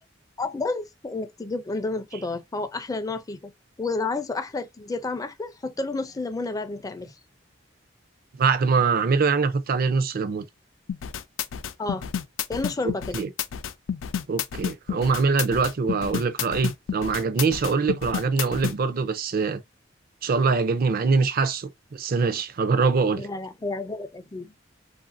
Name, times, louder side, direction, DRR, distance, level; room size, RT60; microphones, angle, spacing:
voice 1, 0.4-3.5 3.8-7.1 11.8-12.1 12.5-13.2 23.2-24.5, left 3 dB, 20° left, 0.4 m, -30 dB
voice 2, 8.4-10.5 13.1-13.3 14.3-19.6 20.2-23.3, right 4 dB, 50° right, 0.4 m, -23 dB
sound 1, 10.9-18.8, left 8 dB, 85° left, 0.4 m, -30 dB
2.9 x 2.5 x 2.4 m
head